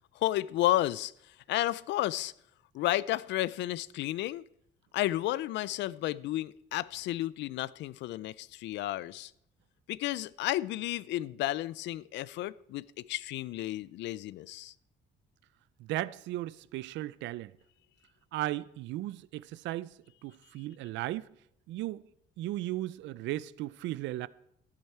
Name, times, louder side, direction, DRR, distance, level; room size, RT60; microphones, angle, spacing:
voice 1, 0.1-1.1 1.5-2.3 2.7-4.4 4.9-9.3 9.9-14.7, left 15 dB, 75° left, 0.5 m, -32 dB
voice 2, 15.8-17.5 18.3-21.3 21.7-22.0 22.4-24.3, right 15 dB, 80° right, 0.5 m, -36 dB
13.5 x 10.5 x 4.4 m
cardioid pair, 150°, 19 cm